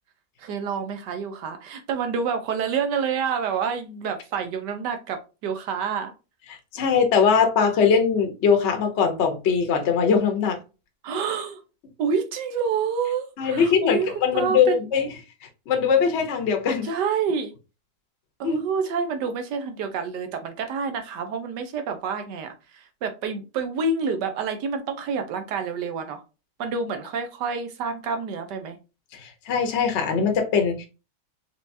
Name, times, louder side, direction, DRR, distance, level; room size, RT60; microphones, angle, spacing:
voice 1, 0.4-6.1 11.0-11.6 12.0-14.1 14.3-14.8 16.8-17.5 18.4-26.2 26.6-28.8, right 5 dB, 80° right, 1.4 m, -28 dB
voice 2, 6.7-10.6 13.4-15.1 15.7-16.9 18.4-18.6 29.1-30.9, left 6 dB, 50° left, 1.0 m, -21 dB
4.5 x 3.7 x 2.6 m
omnidirectional pair, 1.8 m